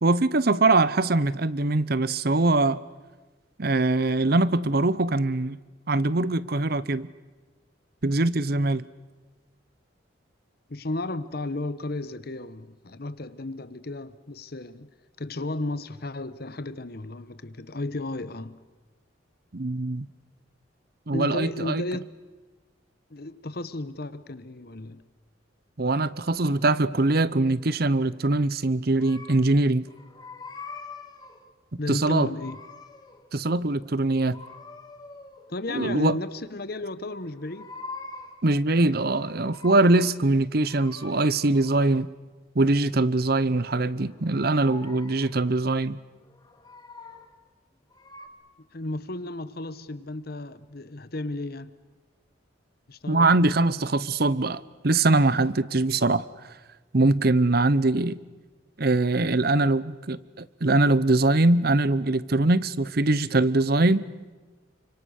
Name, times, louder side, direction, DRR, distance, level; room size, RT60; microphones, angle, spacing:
voice 1, 0.0-2.8 3.6-5.6 5.9-7.1 8.0-8.8 19.5-20.1 21.1-21.8 25.8-29.8 31.7-32.3 33.3-34.4 35.7-36.2 38.4-42.1 42.5-46.0 53.1-56.3 56.9-58.2 58.8-64.1, right 2 dB, 50° right, 0.8 m, -22 dB
voice 2, 10.7-14.9 15.2-18.6 21.1-22.1 23.1-25.0 31.8-32.6 35.5-37.7 48.7-51.7 52.9-53.3, left 2 dB, 50° left, 1.0 m, -33 dB
sound 1, 29.0-29.6 29.9-31.5 32.1-33.3 34.3-35.6 37.2-38.5 38.9-40.2 40.6-41.9 43.8-45.4 46.2-47.4 47.9-48.3, left 3 dB, 20° left, 2.0 m, -44 dB
30.0 x 25.5 x 6.5 m
head